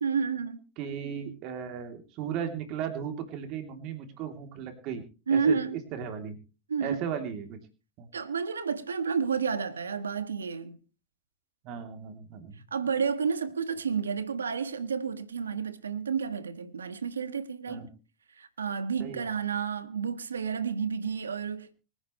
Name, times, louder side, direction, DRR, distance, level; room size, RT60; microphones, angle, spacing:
voice 1, 0.0-0.6 5.3-5.8 6.7-7.0 8.1-10.8 12.7-17.8 18.4-21.7, right 6 dB, 90° right, 1.7 m, -30 dB
voice 2, 0.8-5.0 5.3-5.6 5.9-6.4 6.8-7.6 8.0-8.1 11.6-12.6 17.7-17.9 19.0-19.3, right 8 dB, 50° right, 3.2 m, -36 dB
25.5 x 10.0 x 3.2 m
hypercardioid pair, 95°, 0 cm